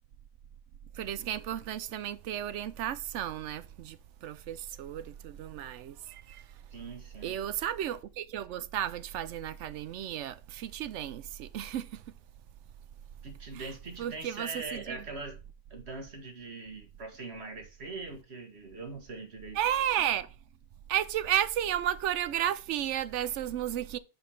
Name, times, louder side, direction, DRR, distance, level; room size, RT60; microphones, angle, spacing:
voice 1, 1.0-6.4 7.2-12.0 13.5-13.7 14.0-15.0 19.5-20.3 20.9-24.0, right 11 dB, 80° right, 0.9 m, -33 dB
voice 2, 6.7-7.4 13.2-15.4 15.7-19.6, right 3 dB, 65° right, 1.9 m, -42 dB
5.8 x 5.2 x 5.6 m
omnidirectional pair, 1.2 m